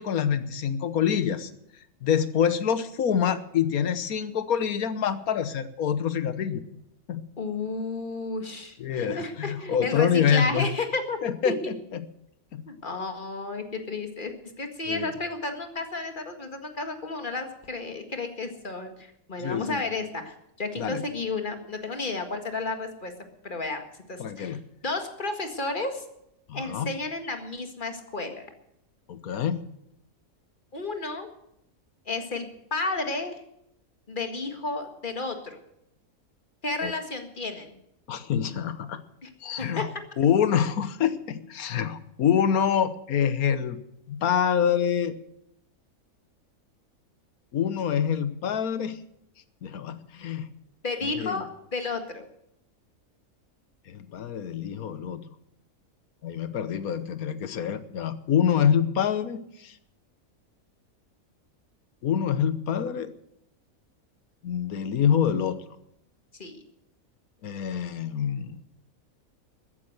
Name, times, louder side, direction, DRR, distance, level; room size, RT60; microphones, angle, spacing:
voice 1, 0.0-1.5 2.0-6.6 7.1-7.2 8.8-10.7 11.2-12.0 12.5-12.6 14.9-15.1 19.4-19.8 20.8-21.0 24.2-24.6 26.5-26.9 29.1-29.6 36.8-36.9 38.1-39.0 39.4-39.9 40.2-43.8 44.1-45.1 47.5-49.0 49.6-50.5 51.1-51.4 53.9-55.2 56.2-59.7 62.0-63.1 64.4-65.6 67.4-68.6, left 8 dB, 80° left, 13 dB, 1.5 m, -26 dB
voice 2, 7.4-11.2 11.4-11.6 12.7-23.1 23.4-23.8 24.1-26.0 26.5-28.5 30.7-31.3 32.1-33.4 34.1-35.6 36.6-37.8 39.2-39.3 39.6-39.9 50.8-52.3 66.4-66.6, left 3 dB, 35° left, 6 dB, 1.9 m, -32 dB
14.0 x 10.0 x 8.0 m, 0.79 s
omnidirectional pair, 1.5 m